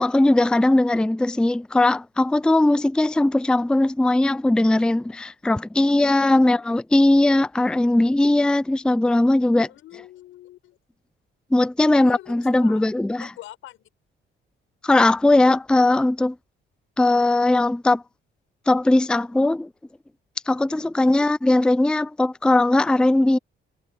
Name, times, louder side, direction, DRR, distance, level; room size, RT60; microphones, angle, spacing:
voice 1, 0.0-9.7 11.5-13.3 14.8-16.3 17.0-18.0 18.7-19.7 20.5-23.4, left 2 dB, 5° left, 0.4 m, -19 dB
voice 2, 9.6-10.8 12.0-12.8 13.2-13.9 21.0-21.3, left 14 dB, 85° left, 6.6 m, -44 dB
cardioid pair, 90°, 20 cm